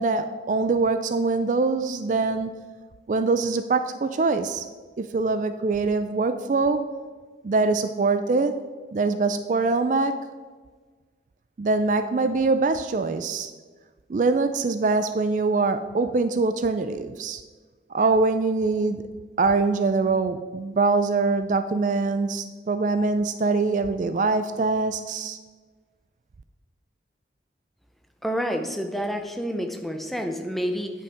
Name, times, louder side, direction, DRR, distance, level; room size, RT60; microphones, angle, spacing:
voice 1, 0.0-2.5 3.1-4.7 5.0-6.8 7.4-8.5 8.9-10.2 11.6-13.5 14.1-17.4 17.9-19.0 19.4-25.4, right 3 dB, 45° right, 10 dB, 0.3 m, -23 dB
voice 2, 28.2-30.9, equal, ahead, 4 dB, 0.6 m, -28 dB
9.4 x 5.5 x 5.0 m, 1.4 s
head